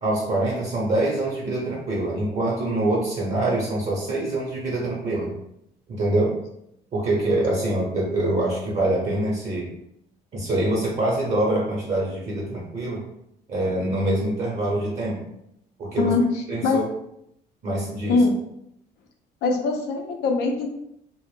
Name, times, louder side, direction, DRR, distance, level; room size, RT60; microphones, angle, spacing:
voice 1, 0.0-5.3 5.9-6.4 6.9-9.7 10.3-13.0 13.5-15.2 15.8-16.1 16.5-16.8 17.6-18.2, right 1 dB, 40° right, -3 dB, 0.7 m, -24 dB
voice 2, 19.4-20.7, left 4 dB, 80° left, 3 dB, 0.5 m, -22 dB
2.1 x 2.0 x 3.1 m, 0.78 s
cardioid pair, 110°, 17 cm